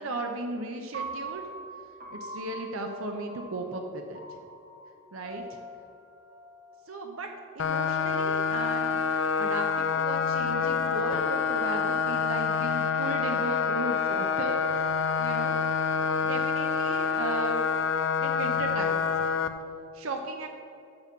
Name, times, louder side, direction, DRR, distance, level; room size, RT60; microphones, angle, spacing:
voice 1, 0.0-1.4 2.1-4.2 5.1-5.4 6.9-7.3 7.5-9.0 9.4-15.6 16.2-17.6 18.2-19.1 19.9-20.5, right 2 dB, 80° right, 3 dB, 0.7 m, -36 dB
Piano, 0.9-7.1, right 2 dB, 45° right, 1.3 m, -43 dB
sound 1, 7.6-19.5, left 6 dB, 65° left, 0.5 m, -27 dB
7.0 x 5.3 x 7.2 m, 2.6 s
head